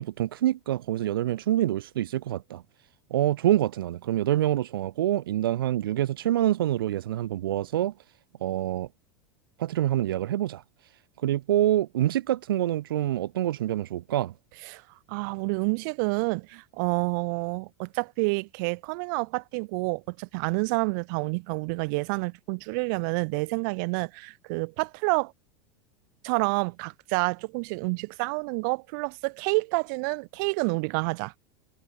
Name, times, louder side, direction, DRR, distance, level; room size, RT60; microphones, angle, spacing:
voice 1, 0.0-2.6 3.1-7.9 8.4-8.9 9.6-10.6 11.2-14.3, right 13 dB, 80° right, 7.2 m, -26 dB
voice 2, 15.1-25.3 26.2-31.3, right 32 dB, 60° right, 6.6 m, -28 dB
hypercardioid pair, 105°, 12 cm